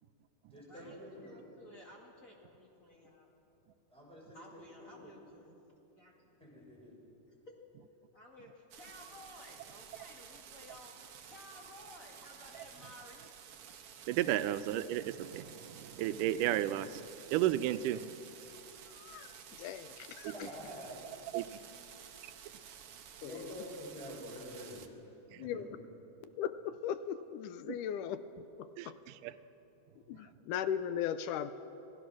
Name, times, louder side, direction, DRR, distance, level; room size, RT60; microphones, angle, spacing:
voice 1, 0.5-1.4 3.9-5.1 6.4-6.9 20.3-21.0 23.2-25.6, equal, ahead, -5 dB, 6.2 m, -48 dB
voice 2, 1.2-3.3 4.3-5.6 5.9-6.1 7.5-7.6 8.1-11.0 11.3-13.2 20.5-21.0, left 1 dB, 30° left, -2 dB, 2.3 m, -55 dB
sound 1, 8.7-24.9, right 8 dB, 60° right, 1.6 m, -53 dB
voice 3, 14.1-18.1 20.2-20.3 21.3-21.5 27.7-27.8 28.8-29.3, right 13 dB, 85° right, 12 dB, 2.2 m, -33 dB
voice 4, 19.0-20.3 23.2-23.4 25.4-25.7 26.4-28.9 30.1-31.5, left 9 dB, 85° left, 12 dB, 2.2 m, -38 dB
27.0 x 17.5 x 6.2 m, 2.9 s
omnidirectional pair, 3.7 m